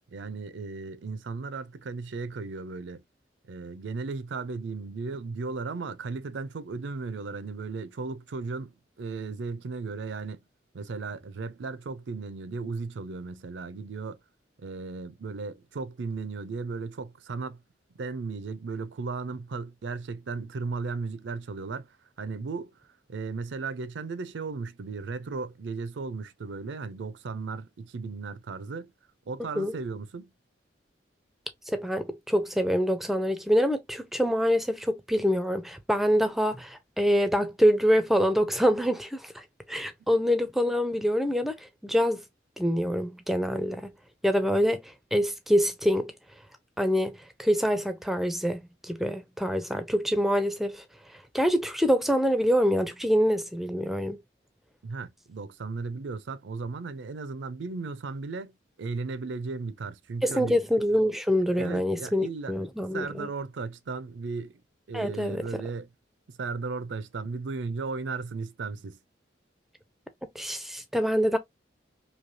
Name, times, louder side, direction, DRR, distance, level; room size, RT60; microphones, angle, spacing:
voice 1, 0.1-3.0 3.5-10.4 10.7-14.2 14.6-17.6 17.9-22.7 23.1-28.9 29.3-30.3 54.8-58.5 58.8-60.6 61.5-62.5 62.9-64.6 64.9-65.9 66.3-69.0, right 4 dB, 85° right, 0.4 m, -35 dB
voice 2, 31.7-42.2 42.6-43.9 44.2-46.1 46.8-50.8 51.3-54.2 60.2-63.3 64.9-65.6 70.4-71.4, equal, ahead, 0.4 m, -25 dB
3.1 x 2.7 x 2.7 m
head